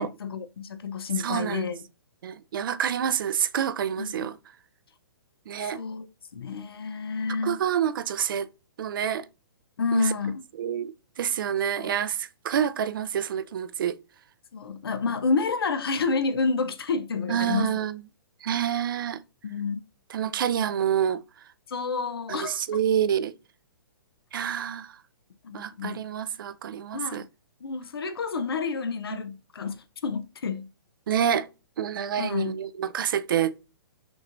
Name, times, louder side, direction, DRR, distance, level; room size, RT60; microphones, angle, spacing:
voice 1, 0.0-1.8 4.0-4.3 5.6-7.6 9.8-10.4 11.8-11.9 14.5-17.8 19.4-19.8 21.7-22.8 25.4-26.0 26.9-27.2 27.6-30.7 32.2-32.6, left 4 dB, 85° left, 0.7 m, -29 dB
voice 2, 1.2-1.6 2.2-4.4 5.5-5.8 7.4-8.5 8.8-9.3 9.9-10.1 10.6-14.0 17.3-18.0 18.4-19.2 20.1-21.2 22.3-23.4 24.3-25.0 25.5-27.2 31.1-31.5 31.8-33.6, right 9 dB, 65° right, 0.4 m, -27 dB
6.0 x 3.2 x 2.5 m
hypercardioid pair, 140°, 12 cm